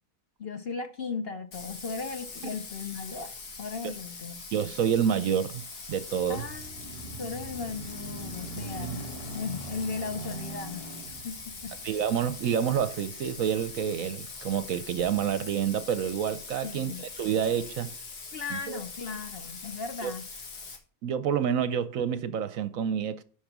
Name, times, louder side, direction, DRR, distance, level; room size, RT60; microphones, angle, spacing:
voice 1, 0.4-3.3 3.6-4.4 6.3-9.1 9.3-11.7 16.6-17.1 18.3-20.3, left 5 dB, 50° left, 0.9 m, -37 dB
Bathtub (filling or washing), 1.5-20.8, left 4 dB, 85° left, 2.2 m, -43 dB
voice 2, 4.5-6.4 11.8-17.9 18.5-18.8 20.0-20.1 21.0-23.2, right 8 dB, 65° right, 1.0 m, -28 dB
sound 1, 5.7-14.5 15.1-15.2, right 3 dB, 20° left, 2.7 m, -42 dB
12.0 x 4.9 x 6.0 m
omnidirectional pair, 1.6 m